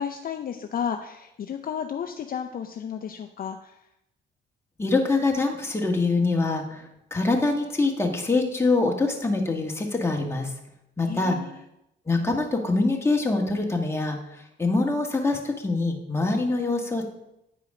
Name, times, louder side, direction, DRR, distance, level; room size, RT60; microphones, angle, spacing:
voice 1, 0.0-3.9 11.0-11.6, left 8 dB, 45° left, 6 dB, 0.6 m, -33 dB
voice 2, 4.8-10.5 11.0-11.4 12.1-14.2 14.6-17.0, left 3 dB, 15° left, 1 dB, 1.7 m, -24 dB
9.5 x 4.9 x 4.9 m, 0.84 s
cardioid pair, 90°, 20 cm